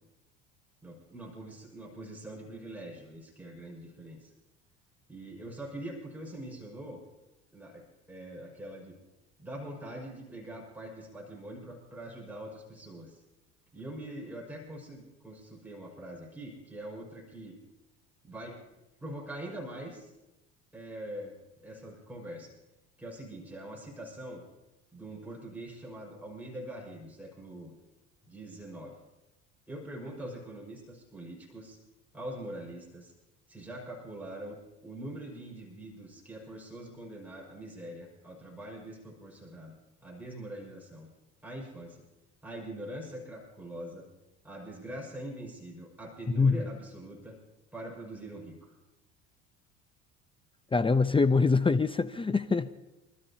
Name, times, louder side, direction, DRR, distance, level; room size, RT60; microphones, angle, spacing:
voice 1, 0.8-4.3 5.1-7.0 7.5-8.9 9.4-13.2 13.7-17.6 18.3-18.6 19.0-20.1 20.7-21.4 21.6-22.5 23.0-24.4 24.9-27.7 28.2-29.0 29.7-31.8 32.1-33.1 33.5-34.6 34.8-41.1 41.4-42.0 42.4-44.1 44.4-47.4 47.7-48.7, right 1 dB, 5° right, -2 dB, 5.6 m, -43 dB
voice 2, 50.7-52.7, left 4 dB, 15° left, 12 dB, 0.7 m, -24 dB
28.5 x 13.5 x 2.9 m, 0.98 s
hypercardioid pair, 80°, 35 cm